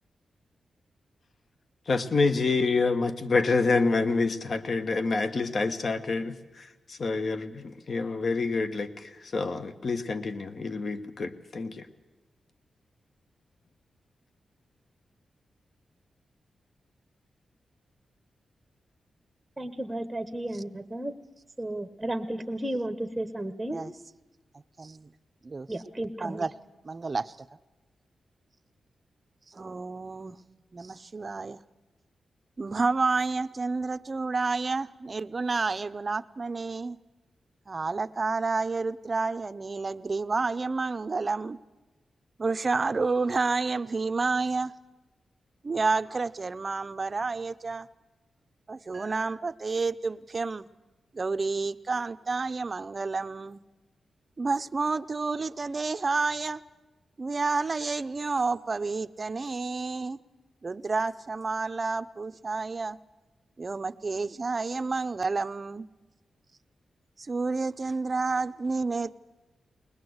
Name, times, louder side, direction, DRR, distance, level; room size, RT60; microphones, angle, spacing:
voice 1, 1.9-11.9, left 3 dB, 50° left, 10 dB, 1.2 m, -27 dB
voice 2, 19.6-21.1 21.6-23.8 25.7-26.5, right 1 dB, 10° right, 8 dB, 1.0 m, -33 dB
voice 3, 24.8-25.1 25.4-25.7 26.2-26.5 26.8-27.4 29.5-30.4 30.7-31.6 32.6-37.0 37.7-41.6 42.4-44.7 45.6-47.9 48.7-50.7 51.1-53.6 54.4-56.6 57.2-60.2 60.6-63.0 63.6-65.9 67.2-69.2, right 4 dB, 30° right, 12 dB, 0.6 m, -30 dB
21.5 x 20.0 x 8.0 m, 1.1 s
wide cardioid pair, 135°, 0 cm